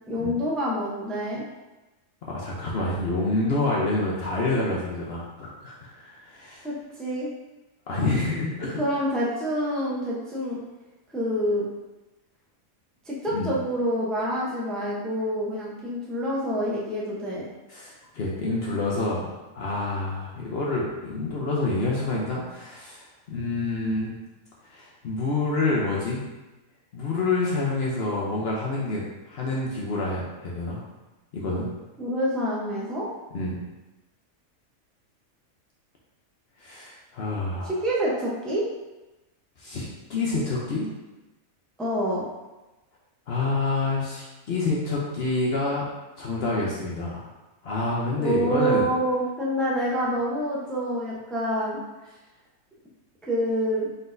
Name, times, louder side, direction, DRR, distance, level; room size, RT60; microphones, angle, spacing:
voice 1, 0.1-1.4 6.6-7.3 8.8-10.6 11.1-11.7 13.1-17.5 32.0-33.1 37.6-38.7 41.8-42.2 48.2-51.8 53.2-53.9, equal, ahead, -5 dB, 0.4 m, -27 dB
voice 2, 2.2-6.6 7.9-8.8 13.3-13.5 17.7-24.1 24.7-26.2 26.9-30.8 31.3-31.7 33.3-33.6 36.6-37.8 39.6-40.9 43.3-45.8 46.2-47.3 47.6-48.9, left 2 dB, 55° left, -4 dB, 0.8 m, -27 dB
4.1 x 4.0 x 2.6 m, 1.1 s
omnidirectional pair, 1.5 m